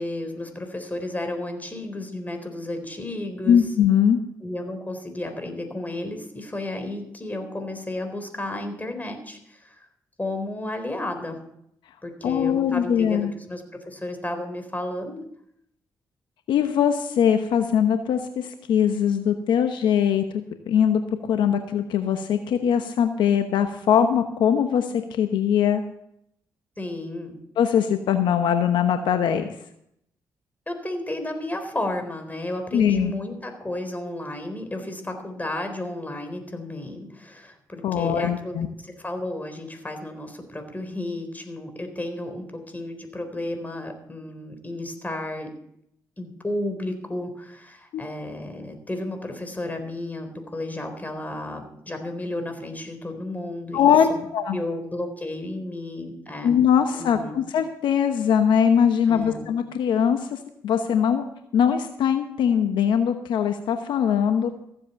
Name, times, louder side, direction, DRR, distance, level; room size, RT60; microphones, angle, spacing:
voice 1, 0.0-3.6 4.4-9.9 10.2-11.4 12.0-15.2 26.8-27.4 30.7-38.6 38.8-45.5 46.2-54.2 54.5-56.5 56.9-57.4 59.1-59.5, left 1 dB, 20° left, 6 dB, 4.0 m, -33 dB
voice 2, 3.5-4.2 12.2-13.3 16.5-25.8 27.6-29.5 32.7-33.1 37.8-38.7 47.9-48.0 53.7-54.6 56.4-60.4 60.6-61.2 61.5-64.5, left 8 dB, 75° left, 7 dB, 1.0 m, -21 dB
15.0 x 8.0 x 7.0 m, 0.73 s
supercardioid pair, 50°, 8 cm